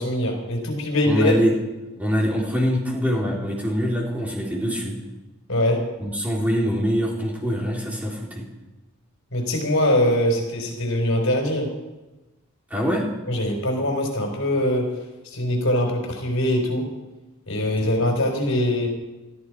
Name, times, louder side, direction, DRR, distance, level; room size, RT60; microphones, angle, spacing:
voice 1, 0.0-1.4 5.5-5.9 9.3-11.7 13.3-16.9 17.5-18.9, left 1 dB, 75° left, 2 dB, 4.6 m, -22 dB
voice 2, 1.0-1.5 2.0-5.0 6.0-8.5 12.7-13.0 17.8-18.1, equal, 10° right, -3 dB, 3.8 m, -24 dB
19.5 x 14.0 x 4.9 m, 1.1 s
head